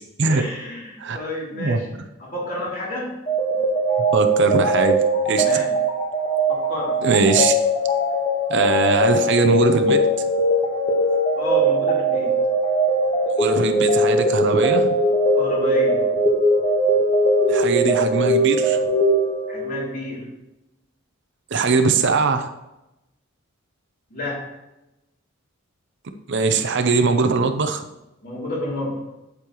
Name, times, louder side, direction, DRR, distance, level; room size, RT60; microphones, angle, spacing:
voice 1, 0.3-1.9 2.2-3.1 5.3-5.8 6.5-7.0 11.3-12.3 15.3-16.1 19.5-20.4 24.1-24.6 28.2-29.1, left 1 dB, 45° left, -5 dB, 3.1 m, -30 dB
sound 1, 3.3-19.9, right 1 dB, 25° left, 1.5 m, -20 dB
voice 2, 4.1-5.6 7.0-7.6 8.5-10.0 13.4-14.9 17.5-18.8 21.5-22.5 26.3-27.8, right 4 dB, 55° right, 7 dB, 0.7 m, -20 dB
8.5 x 8.3 x 3.1 m, 0.92 s
head